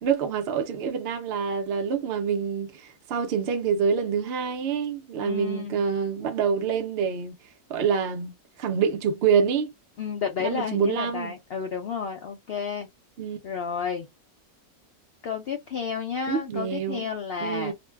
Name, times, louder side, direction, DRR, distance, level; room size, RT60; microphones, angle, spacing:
voice 1, 0.0-7.3 7.7-8.3 8.6-9.7 10.4-11.3 13.2-13.4 16.3-17.1 17.4-17.7, right 6 dB, 60° right, 0.7 m, -26 dB
voice 2, 5.2-5.8 10.0-12.9 13.4-14.1 15.2-17.7, left 6 dB, 70° left, 0.5 m, -31 dB
2.5 x 2.1 x 3.2 m
omnidirectional pair, 1.6 m